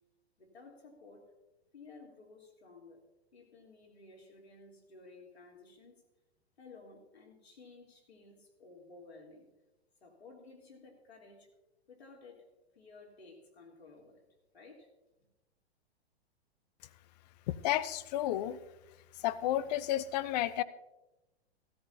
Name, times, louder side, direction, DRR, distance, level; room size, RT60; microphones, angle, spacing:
voice 1, 0.4-1.3 1.7-3.0 3.3-6.0 6.6-9.5 10.0-11.5 11.9-12.5 12.7-14.2 14.5-14.9, left 3 dB, 75° left, 0 dB, 3.3 m, -55 dB
voice 2, 17.5-18.6 19.2-20.6, left 13 dB, 40° left, 16 dB, 0.7 m, -32 dB
16.0 x 14.0 x 2.8 m, 0.99 s
figure-of-eight pair, 105°, 32 cm